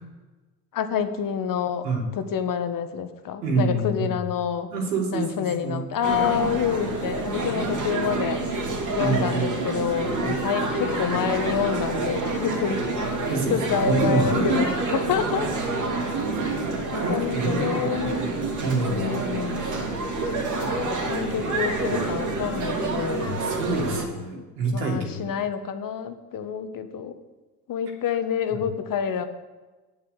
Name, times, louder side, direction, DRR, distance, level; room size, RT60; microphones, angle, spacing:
voice 1, 0.7-1.8 2.1-4.7 5.1-8.4 8.9-12.9 13.2-14.7 15.1-15.5 16.9-18.3 18.8-19.7 20.9-23.3 24.3-24.4 24.7-27.2 27.7-29.3, left 8 dB, 40° left, 9 dB, 1.4 m, -28 dB
voice 2, 3.4-4.2 4.7-5.8 9.0-9.5 10.2-10.4 13.3-14.6 16.9-19.0 19.6-19.7 23.2-25.3 28.5-28.6, right 3 dB, 80° right, -1 dB, 3.2 m, -27 dB
sound 1, 6.0-24.1, right 3 dB, 40° right, 2.7 m, -28 dB
8.9 x 8.6 x 8.3 m, 1.2 s
hypercardioid pair, 65°, 48 cm